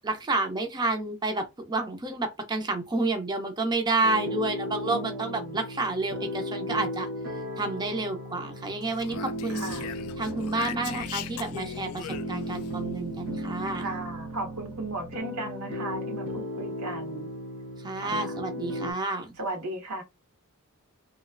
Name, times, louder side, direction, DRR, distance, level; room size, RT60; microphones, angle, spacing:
voice 1, 0.0-7.1 7.6-9.7 10.2-13.9 17.8-19.3, right 2 dB, 20° right, 0.4 m, -30 dB
sound 1, 4.0-18.9, equal, 65° right, 1.1 m, -36 dB
voice 2, 4.8-5.6 9.5-9.9 13.8-17.3 18.0-18.3 19.4-20.0, right 2 dB, 90° right, 1.2 m, -36 dB
Speech, 8.8-12.7, left 10 dB, 70° left, 0.3 m, -39 dB
3.0 x 2.7 x 2.4 m
head